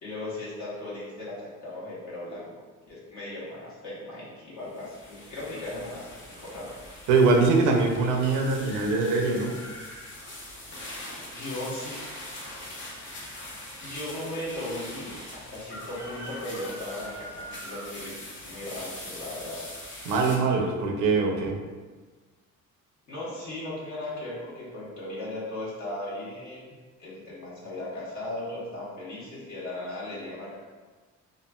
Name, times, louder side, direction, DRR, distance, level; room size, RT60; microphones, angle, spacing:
voice 1, 0.0-2.5 2.9-6.7 11.3-12.0 13.8-18.2 18.4-19.6 20.6-20.7 21.3-21.5 23.1-26.7 27.0-30.6, left 1 dB, 75° left, -8 dB, 1.1 m, -37 dB
sound 1, 4.6-20.4, left 1 dB, 40° left, 0.7 m, -42 dB
voice 2, 7.1-9.6 20.1-21.6, right 3 dB, 90° right, 2 dB, 0.5 m, -23 dB
3.0 x 2.4 x 2.2 m, 1.4 s
cardioid pair, 90°, 30 cm